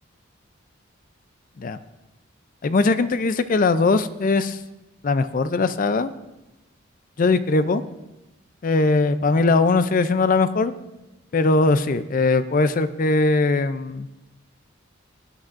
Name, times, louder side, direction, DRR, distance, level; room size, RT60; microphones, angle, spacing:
voice 1, 2.6-4.6 5.0-6.1 7.2-7.8 8.6-10.7 11.3-14.1, left 3 dB, 45° left, 12 dB, 0.4 m, -20 dB
18.5 x 9.9 x 2.6 m, 1.0 s
head